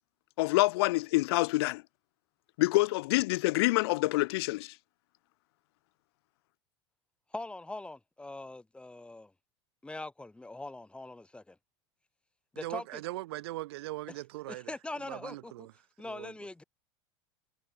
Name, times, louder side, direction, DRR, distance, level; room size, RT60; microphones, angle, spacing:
voice 1, 0.4-1.8 2.6-4.7, left 21 dB, 70° left, 0.4 m, -26 dB
voice 2, 7.3-9.3 9.8-11.6 12.5-13.0 14.1-14.2 14.5-15.7 16.0-16.6, left 2 dB, 10° left, 1.4 m, -42 dB
voice 3, 12.6-14.7 15.1-15.7 16.0-16.3, right 18 dB, 75° right, 3.4 m, -40 dB
hypercardioid pair, 90°, 14 cm